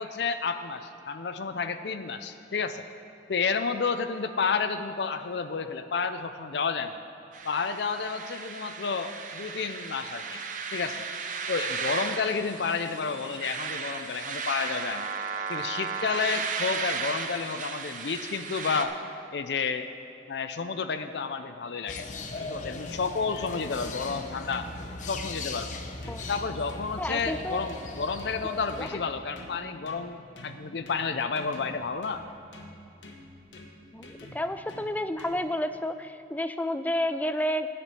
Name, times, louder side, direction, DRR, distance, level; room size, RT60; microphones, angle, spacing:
voice 1, 0.0-2.8 3.3-7.0 7.4-10.4 10.7-11.0 11.5-15.1 15.5-18.9 19.3-19.9 20.3-22.0 22.5-24.7 25.1-25.8 26.3-32.2, left 5 dB, 65° left, 9 dB, 0.5 m, -31 dB
sound 1, 7.3-18.8, right 5 dB, 45° right, 0.7 m, -35 dB
sound 2, 21.9-28.9, left 3 dB, 45° left, 0.8 m, -38 dB
sound 3, 22.0-35.7, left 1 dB, 85° left, 1.3 m, -49 dB
voice 2, 27.0-27.6 28.7-28.9 33.9-37.7, left 1 dB, 10° left, 10 dB, 0.3 m, -30 dB
11.0 x 6.0 x 8.3 m, 2.7 s
head